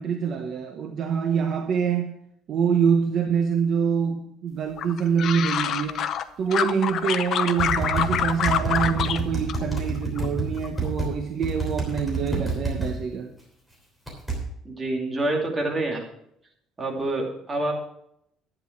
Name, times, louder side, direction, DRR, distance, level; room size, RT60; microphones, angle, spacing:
voice 1, 0.0-2.1 2.5-6.1 6.4-13.3, right 6 dB, 45° right, 1.0 m, -25 dB
sound 1, 4.8-6.2 6.5-9.2 9.5-10.3 10.6-11.0, left 9 dB, 50° left, 0.7 m, -26 dB
sound 2, 7.6-11.1 11.4-12.9 14.1-14.4, right 3 dB, ahead, 3.2 m, -28 dB
voice 2, 14.6-16.0 16.8-17.7, right 2 dB, 15° right, 2.4 m, -27 dB
11.0 x 9.2 x 4.6 m
cardioid pair, 155°, 0 cm